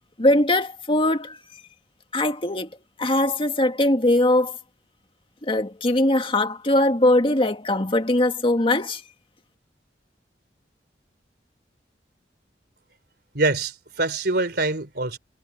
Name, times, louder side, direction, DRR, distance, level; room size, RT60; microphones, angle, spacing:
voice 1, 0.2-1.4 2.1-2.7 3.0-4.6 5.4-9.0, left 1 dB, 30° left, 2.0 m, -21 dB
voice 2, 13.3-15.2, right 2 dB, 65° right, 4.0 m, -24 dB
head